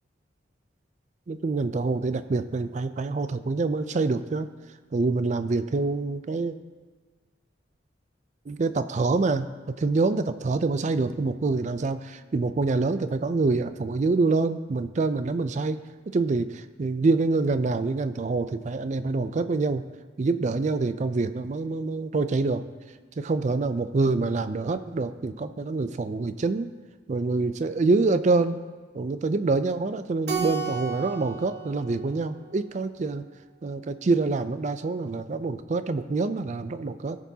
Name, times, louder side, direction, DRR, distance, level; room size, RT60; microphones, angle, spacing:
voice 1, 1.3-4.5 4.9-6.5 8.5-9.5 9.8-15.8 16.1-16.5 16.8-19.8 20.2-22.6 23.2-26.7 27.1-28.6 28.9-33.2 33.6-37.2, right 3 dB, 40° right, 12 dB, 0.4 m, -26 dB
Keyboard (musical), 30.3-32.9, right 6 dB, 55° right, 1.0 m, -34 dB
17.0 x 6.1 x 2.8 m, 1.5 s
head